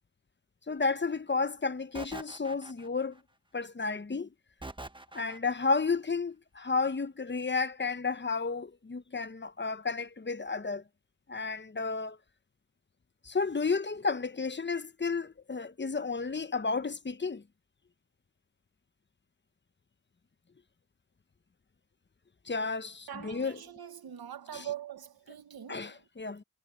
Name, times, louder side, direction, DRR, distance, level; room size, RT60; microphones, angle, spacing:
voice 1, 0.7-3.2 3.5-4.3 5.1-10.8 11.3-12.2 13.2-17.4 22.5-23.6 24.5-24.7 25.7-26.4, left 4 dB, 30° left, 1.0 m, -32 dB
sound 1, 1.9-3.2 4.6-5.7, right 2 dB, 15° right, 1.3 m, -44 dB
voice 2, 23.1-26.0, right 10 dB, 85° right, 1.5 m, -43 dB
cardioid pair, 50°, 36 cm